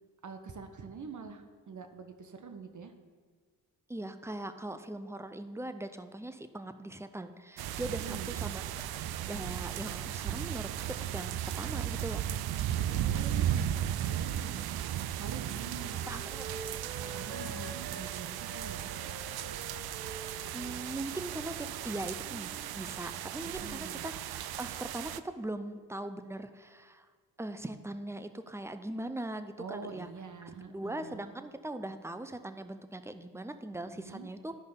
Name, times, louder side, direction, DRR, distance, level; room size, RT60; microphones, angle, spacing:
voice 1, 0.2-2.9 7.9-8.3 12.8-14.7 15.2-16.2 17.1-19.0 23.6-24.1 29.6-31.3 33.8-34.3, right 5 dB, 45° right, 7 dB, 1.1 m, -45 dB
voice 2, 3.9-12.3 16.1-16.6 20.5-27.1 27.4-30.1 30.4-34.5, right 1 dB, 5° right, 9 dB, 0.6 m, -40 dB
sound 1, 7.6-25.2, right 11 dB, 60° right, 0.5 m, -36 dB
Wind instrument woodwind instrument, 14.2-18.1 18.4-21.9 22.2-22.8, right 2 dB, 85° right, 1.6 m, -48 dB
12.0 x 5.2 x 3.9 m, 1.5 s
supercardioid pair, 45°, 43 cm